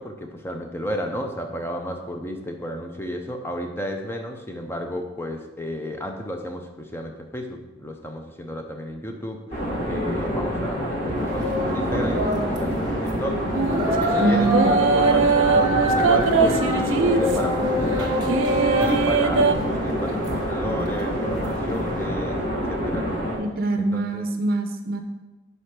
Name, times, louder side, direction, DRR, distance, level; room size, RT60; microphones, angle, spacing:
voice 1, 0.0-18.3 18.8-22.4 22.7-23.2 23.8-24.3, equal, 10° left, 3 dB, 0.7 m, -33 dB
sound 1, 9.5-23.4, equal, 40° left, 2.0 m, -27 dB
sound 2, 11.2-22.1, equal, 20° right, 1.0 m, -27 dB
sound 3, 13.5-13.9 14.5-17.5 18.3-19.5, right 4 dB, 80° right, 0.6 m, -21 dB
voice 2, 14.2-14.7 23.4-25.0, right 3 dB, 50° right, 6 dB, 0.7 m, -24 dB
5.4 x 5.0 x 5.9 m, 1.1 s
head